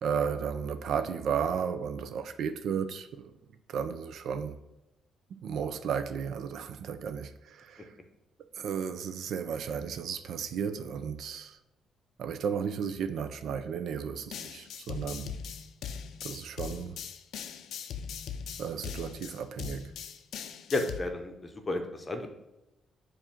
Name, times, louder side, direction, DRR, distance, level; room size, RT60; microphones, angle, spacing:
voice 1, 0.0-3.3 3.7-4.6 5.3-7.9 8.5-11.6 12.2-15.3 16.2-17.0 18.6-19.9, right 7 dB, 65° right, 10 dB, 0.4 m, -34 dB
sound 1, 14.3-21.0, left 7 dB, 75° left, 0.4 m, -40 dB
voice 2, 20.7-22.3, left 2 dB, 20° left, 5 dB, 0.7 m, -32 dB
7.1 x 2.6 x 5.7 m, 0.94 s
cardioid pair, 140°, 0 cm